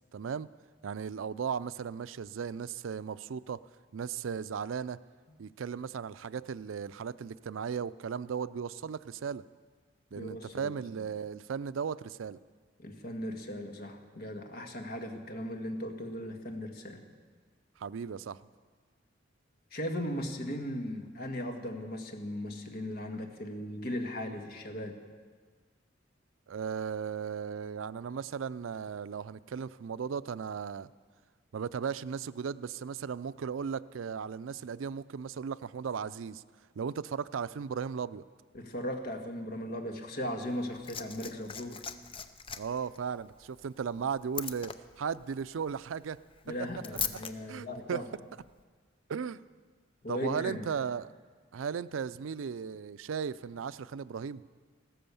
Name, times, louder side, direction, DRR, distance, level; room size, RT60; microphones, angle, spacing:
voice 1, 0.1-0.5 0.8-3.6 3.9-5.0 5.4-9.4 10.1-12.4 17.8-18.4 26.5-30.9 31.5-36.4 36.8-38.2 42.5-46.2 47.5-48.0 49.1-49.4 50.1-51.1 51.5-54.4, right 6 dB, 90° right, 17 dB, 0.4 m, -36 dB
voice 2, 10.1-10.7 12.8-17.0 19.7-25.0 38.5-41.8 46.4-48.0 50.0-50.6, left 1 dB, 55° left, 4 dB, 1.8 m, -37 dB
Liquid, 40.4-47.3 48.4-48.5, left 7 dB, 30° left, 0.6 m, -41 dB
15.0 x 13.0 x 7.0 m, 1.5 s
head